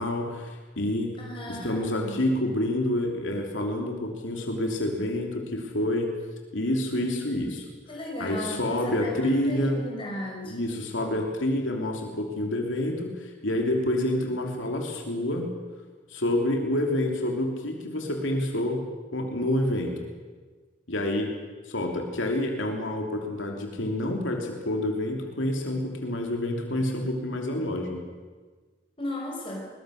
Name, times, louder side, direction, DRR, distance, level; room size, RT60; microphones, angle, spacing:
voice 1, 0.0-1.2 1.5-6.2 6.5-7.7 8.2-9.8 10.4-15.5 16.1-18.9 19.1-20.0 20.9-21.3 21.6-28.1, left 1 dB, 90° left, 2 dB, 3.0 m, -28 dB
voice 2, 1.2-2.2 7.9-10.6 29.0-29.7, left 1 dB, 30° left, -1 dB, 5.4 m, -35 dB
21.5 x 20.5 x 6.5 m, 1.4 s
head